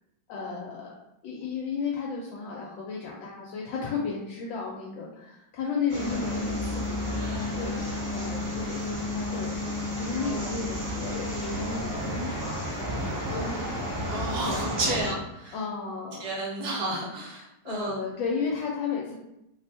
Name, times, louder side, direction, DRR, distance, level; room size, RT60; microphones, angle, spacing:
voice 1, 0.3-1.0 1.2-13.7 14.4-15.2 15.5-16.3 17.6-19.1, left 5 dB, 75° left, -3 dB, 1.2 m, -34 dB
sound 1, 5.9-15.1, left 1 dB, 30° right, 1.0 m, -32 dB
voice 2, 10.2-10.5 14.1-15.5 16.2-18.0, right 2 dB, 60° right, -3 dB, 1.1 m, -32 dB
3.3 x 2.1 x 4.1 m, 0.84 s
omnidirectional pair, 2.3 m